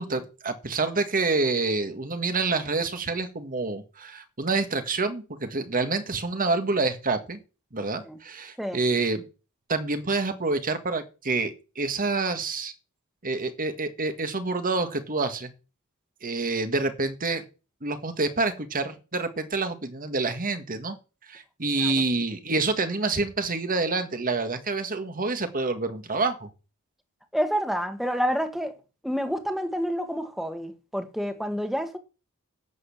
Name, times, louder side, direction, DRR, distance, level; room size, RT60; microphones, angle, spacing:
voice 1, 0.0-7.4 7.7-9.3 9.7-12.7 13.2-15.5 16.2-17.5 17.8-21.0 21.3-26.5, right 3 dB, 40° right, 1.8 m, -27 dB
voice 2, 27.3-28.7 29.0-32.0, equal, ahead, 1.7 m, -28 dB
11.0 x 7.8 x 7.3 m
head